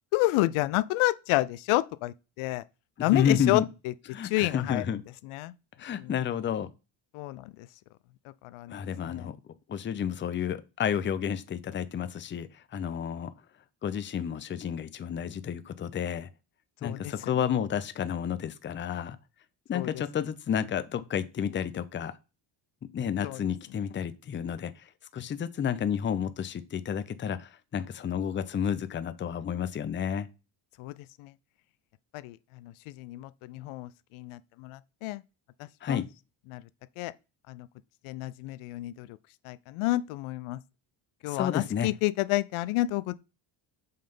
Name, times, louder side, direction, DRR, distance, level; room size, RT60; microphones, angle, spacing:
voice 1, 0.1-2.6 3.0-3.9 4.2-4.8 5.2-5.5 6.0-6.1 7.1-7.5 8.4-8.8 9.1-9.3 16.8-17.3 19.7-19.9 23.2-23.4 30.8-30.9 31.2-31.3 32.1-35.2 35.9-36.0 36.5-36.6 37.0-37.1 37.5-37.7 38.0-39.2 39.4-40.6 41.2-43.2, left 18 dB, 90° left, 0.5 m, -30 dB
voice 2, 3.0-3.7 4.1-5.0 5.8-6.7 8.7-9.3 9.7-13.3 13.8-16.3 16.8-19.2 19.7-22.1 22.9-24.9 25.1-30.3 35.8-36.1 41.3-41.9, left 8 dB, 25° left, 0.5 m, -31 dB
5.6 x 3.3 x 5.3 m
cardioid pair, 115°, 48 cm